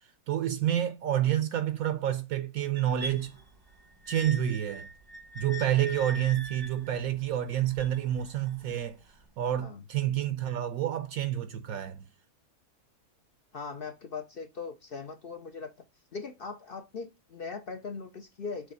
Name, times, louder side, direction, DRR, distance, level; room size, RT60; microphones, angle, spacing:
voice 1, 0.3-3.3 4.1-4.9 5.4-9.0 9.4-12.1, right 11 dB, 70° right, 1.0 m, -29 dB
sound 1, 2.8-8.8 9.6-9.7, equal, 20° right, 0.7 m, -43 dB
voice 2, 13.5-15.7 16.1-18.7, left 5 dB, 55° left, 0.6 m, -40 dB
6.9 x 3.2 x 5.5 m
omnidirectional pair, 1.6 m